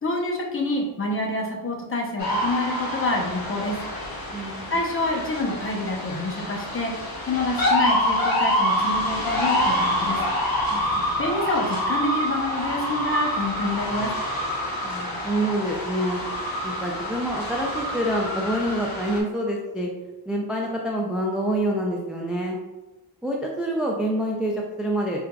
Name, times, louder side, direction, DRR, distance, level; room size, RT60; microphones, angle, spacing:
voice 1, 0.0-3.8 4.7-6.9 7.3-10.2 11.2-14.1, left 2 dB, 35° left, -1 dB, 0.8 m, -27 dB
sound 1, 2.2-19.2, equal, 65° left, 0.9 m, -27 dB
voice 2, 4.3-4.7 10.7-11.1 14.8-16.2 16.6-19.9 20.3-22.6 23.2-25.2, right 1 dB, 5° right, -1 dB, 0.3 m, -27 dB
4.5 x 2.4 x 2.3 m, 1.1 s
wide cardioid pair, 95°, 39 cm